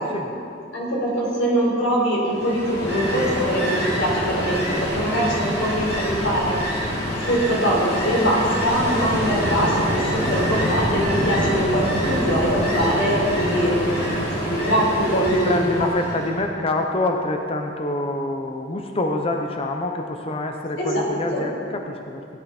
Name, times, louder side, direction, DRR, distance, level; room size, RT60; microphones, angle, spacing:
voice 1, 0.7-6.6 6.8-13.8 14.4-15.9 20.8-21.0 21.3-21.4, equal, 90° left, -4 dB, 4.1 m, -23 dB
Ocean, 2.3-16.4, equal, 55° left, 3.8 m, -25 dB
voice 2, 15.1-22.2, left 2 dB, 30° left, 3 dB, 0.7 m, -26 dB
17.5 x 11.5 x 4.3 m, 2.5 s
head